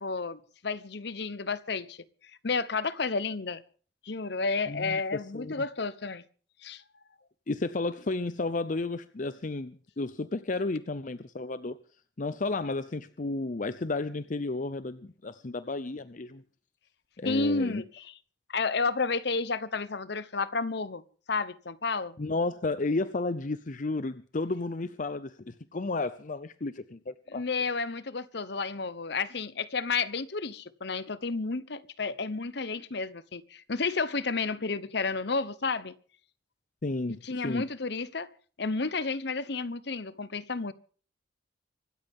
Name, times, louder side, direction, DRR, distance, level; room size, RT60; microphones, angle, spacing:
voice 1, 0.0-2.0 2.4-3.6 4.0-6.2 6.6-6.8 17.2-18.1 18.5-21.0 21.3-22.2 27.3-35.9 37.2-38.3 38.6-40.7, left 4 dB, 60° left, 1.0 m, -31 dB
voice 2, 4.7-5.6 7.5-11.8 12.2-16.4 17.2-17.8 22.2-27.4 36.8-37.7, left 3 dB, 45° left, 0.7 m, -32 dB
25.5 x 13.5 x 3.7 m
head